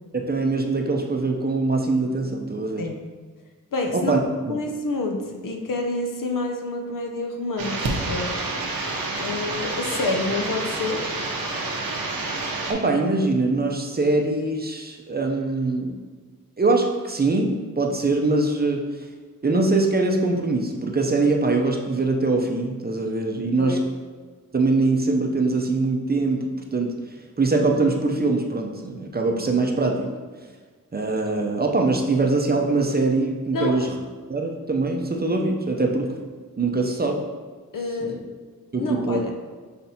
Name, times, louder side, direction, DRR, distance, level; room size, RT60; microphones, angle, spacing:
voice 1, 0.1-2.9 3.9-4.2 12.7-16.0 16.6-18.8 19.4-23.8 24.5-26.4 26.7-26.9 27.4-30.1 30.9-34.0 34.3-36.1 36.6-37.2 38.7-39.2, right 3 dB, 30° right, 2 dB, 0.5 m, -22 dB
voice 2, 3.7-4.1 4.5-8.4 9.2-11.0 23.6-23.8 33.5-33.9 37.7-38.2 38.8-39.3, left 2 dB, 65° left, 2 dB, 0.7 m, -28 dB
sound 1, 7.6-12.7, right 3 dB, 85° right, 0.8 m, -28 dB
5.7 x 3.3 x 2.8 m, 1.4 s
cardioid pair, 70°, 35 cm